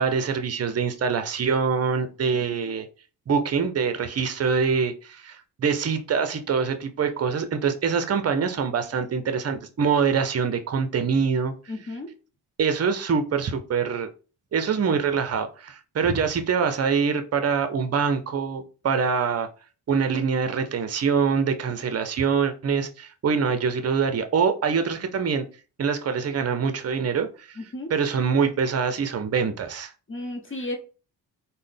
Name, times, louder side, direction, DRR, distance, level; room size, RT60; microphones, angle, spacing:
voice 1, 0.0-2.9 3.3-11.5 12.6-14.1 14.5-19.5 19.9-25.4 25.8-27.6 27.9-29.9, right 6 dB, 35° right, 8 dB, 0.6 m, -24 dB
voice 2, 2.3-2.8 11.7-12.1 27.6-27.9 30.1-30.8, left 1 dB, 30° left, 3 dB, 1.0 m, -34 dB
3.6 x 2.2 x 3.4 m, 0.35 s
supercardioid pair, 50°, 43 cm